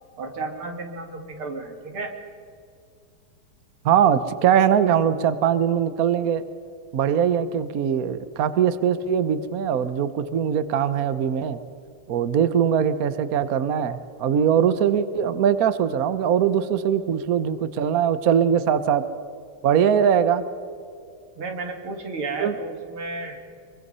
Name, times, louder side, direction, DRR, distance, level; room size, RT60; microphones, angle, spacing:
voice 1, 0.2-2.1 21.4-23.4, right 3 dB, 90° right, 3 dB, 3.2 m, -32 dB
voice 2, 3.8-6.4 6.9-11.6 12.1-19.0 19.6-20.4 22.4-22.5, right 8 dB, 55° right, 12 dB, 1.1 m, -21 dB
24.5 x 23.5 x 5.5 m, 2.3 s
omnidirectional pair, 2.3 m